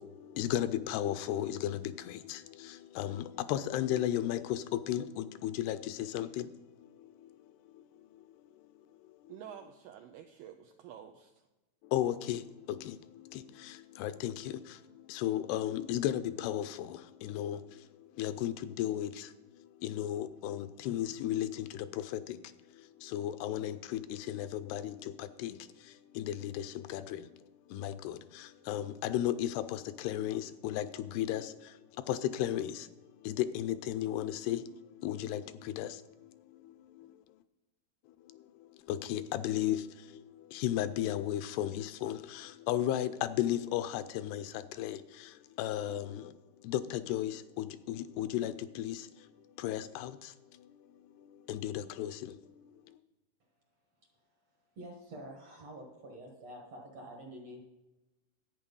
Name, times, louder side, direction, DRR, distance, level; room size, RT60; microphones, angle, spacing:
voice 1, 0.0-8.3 8.6-8.8 9.1-9.3 11.8-37.2 38.2-46.4 46.6-49.3 49.6-53.0, left 12 dB, 85° left, 12 dB, 2.5 m, -36 dB
voice 2, 9.3-11.5, right 9 dB, 90° right, 5 dB, 2.0 m, -49 dB
voice 3, 54.8-57.6, right 1 dB, 60° right, 1 dB, 1.8 m, -47 dB
11.0 x 8.7 x 5.3 m, 1.1 s
omnidirectional pair, 4.7 m